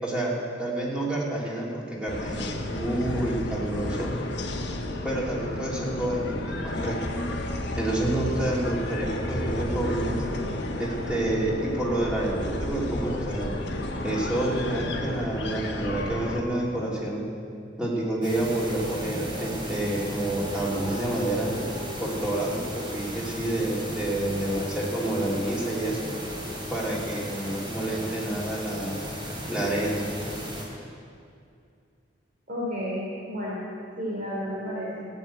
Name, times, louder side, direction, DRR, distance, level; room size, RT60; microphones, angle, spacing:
voice 1, 0.0-4.1 5.0-7.0 7.8-10.2 10.8-13.5 14.0-17.2 17.8-21.5 22.0-26.1 26.7-29.0 29.5-30.0, right 1 dB, 5° right, -5 dB, 3.0 m, -29 dB
sound 1, 2.1-16.4, left 1 dB, 65° left, 1.4 m, -32 dB
sound 2, 18.2-30.7, equal, 25° right, 3.3 m, -35 dB
voice 2, 32.5-33.7 34.0-35.1, equal, 50° right, -6 dB, 3.1 m, -32 dB
15.5 x 8.6 x 9.0 m, 2.4 s
head